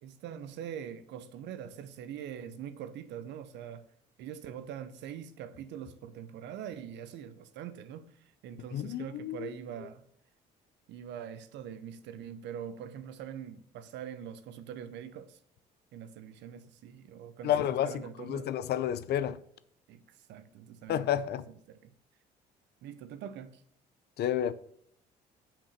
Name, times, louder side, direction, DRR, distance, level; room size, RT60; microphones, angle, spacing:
voice 1, 0.0-3.8 4.2-10.1 10.9-15.4 15.9-18.5 19.9-21.9 22.8-23.6, right 9 dB, 70° right, 0.8 m, -43 dB
voice 2, 8.7-9.5 17.4-17.9 18.2-19.4 20.9-21.4 24.2-24.5, left 10 dB, 60° left, 0.6 m, -30 dB
5.8 x 5.2 x 6.6 m
supercardioid pair, 60°, 19 cm